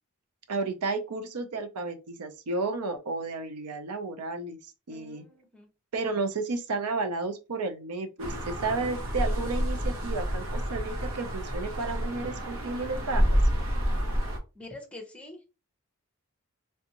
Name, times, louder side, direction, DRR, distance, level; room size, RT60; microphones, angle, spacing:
voice 1, 0.5-4.6 4.9-5.2 5.9-13.4, right 3 dB, 90° right, 0.6 m, -32 dB
voice 2, 4.9-5.7 14.5-15.5, left 2 dB, 5° left, 0.8 m, -45 dB
sound 1, 8.2-14.4, equal, 65° right, 1.0 m, -29 dB
3.4 x 2.6 x 2.8 m
head